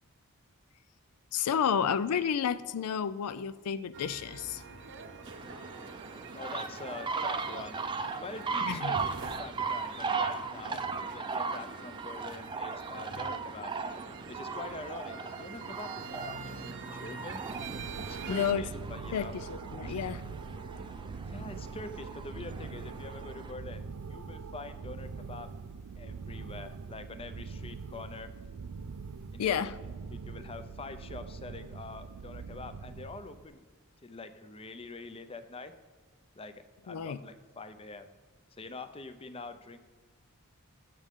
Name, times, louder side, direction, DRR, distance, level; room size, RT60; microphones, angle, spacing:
voice 1, 1.3-4.6 8.6-9.0 18.3-18.7 19.1-20.2 29.4-29.7 36.9-37.2, left 7 dB, 90° left, 15 dB, 0.4 m, -31 dB
sound 1, 3.9-18.5, right 5 dB, 55° right, 0.7 m, -46 dB
sound 2, 5.3-23.5, right 4 dB, 20° right, 0.5 m, -38 dB
voice 2, 6.3-13.7 14.3-17.4 18.1-19.3 19.8-20.0 21.3-23.8 24.1-25.5 26.0-28.3 29.3-29.8 30.1-33.6 34.0-35.7 36.4-36.5 36.8-38.1 38.5-39.8, left 3 dB, 25° left, 10 dB, 0.5 m, -45 dB
sound 3, 17.5-33.5, right 5 dB, 85° right, 0.4 m, -43 dB
15.0 x 6.4 x 3.6 m, 1.4 s
head